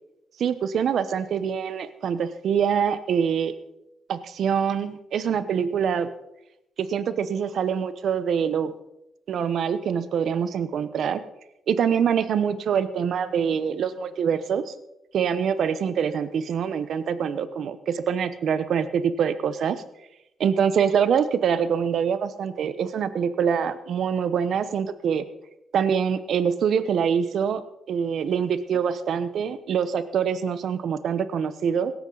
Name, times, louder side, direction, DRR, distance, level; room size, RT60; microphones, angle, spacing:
voice 1, 0.4-3.5 4.1-6.1 6.8-8.7 9.3-11.2 11.7-14.7 15.1-19.8 20.4-25.2 25.7-27.6 27.9-31.9, right 7 dB, 70° right, 13 dB, 1.0 m, -25 dB
17.0 x 13.5 x 4.0 m, 0.87 s
cardioid pair, 80°, 0 cm